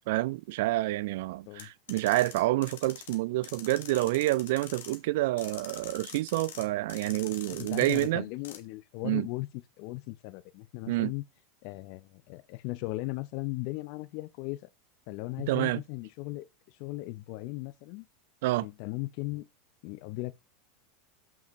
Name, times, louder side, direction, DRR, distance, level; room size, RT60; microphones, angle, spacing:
voice 1, 0.1-8.2 9.0-9.3 10.9-11.1 15.5-15.8 18.4-18.7, right 18 dB, 65° right, 0.4 m, -28 dB
sound 1, 1.6-3.2 3.4-5.0 5.4-6.6 6.9-8.1 8.4-8.6, left 9 dB, 75° left, 1.3 m, -45 dB
voice 2, 7.5-9.5 9.8-11.2 11.6-14.6 15.1-16.5 16.8-18.1 18.6-19.5 19.8-20.3, left 20 dB, 60° left, 0.7 m, -37 dB
7.2 x 5.8 x 3.1 m
hypercardioid pair, 100°, 0 cm